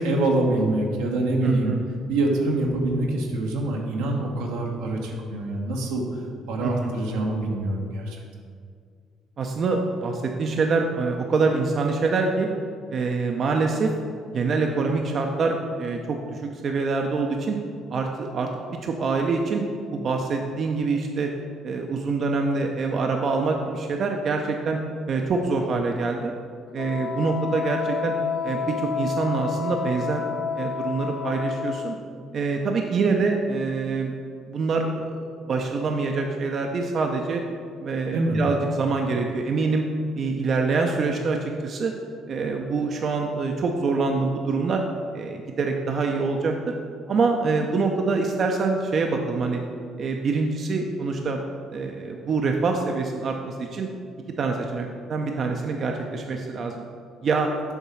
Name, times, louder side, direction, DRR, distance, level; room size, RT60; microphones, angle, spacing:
voice 1, 0.0-1.7 2.1-6.0 6.5-8.2 38.1-38.4, right 2 dB, 85° right, -1 dB, 1.0 m, -25 dB
voice 2, 1.4-1.8 6.6-6.9 9.4-12.5 12.9-13.9 14.3-17.6 17.9-18.5 18.8-19.6 19.9-21.3 21.6-24.8 25.1-26.3 26.7-28.2 28.4-30.2 30.6-31.9 32.3-34.1 34.5-37.4 37.8-39.8 40.2-41.9 42.3-44.8 45.1-46.7 47.1-49.6 50.0-51.4 51.7-53.9 54.4-56.8 57.2-57.5, right 4 dB, 55° right, 2 dB, 0.6 m, -25 dB
Wind instrument woodwind instrument, 26.8-32.0, left 6 dB, 70° left, 0.4 m, -30 dB
7.1 x 3.6 x 5.7 m, 2.2 s
hypercardioid pair, 60°, 0 cm